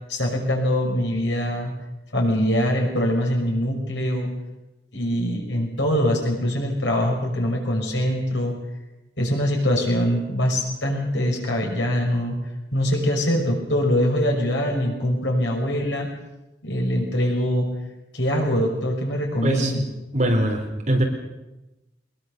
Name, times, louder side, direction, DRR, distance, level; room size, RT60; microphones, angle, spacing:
voice 1, 0.1-1.7 2.1-4.3 4.9-8.6 9.2-12.4 12.7-16.1 16.6-17.7 18.1-19.8, equal, 85° left, 1 dB, 6.1 m, -23 dB
voice 2, 19.4-19.7 20.1-20.6 20.9-21.0, right 1 dB, 40° right, 2 dB, 4.0 m, -21 dB
22.0 x 20.5 x 6.8 m, 1.0 s
head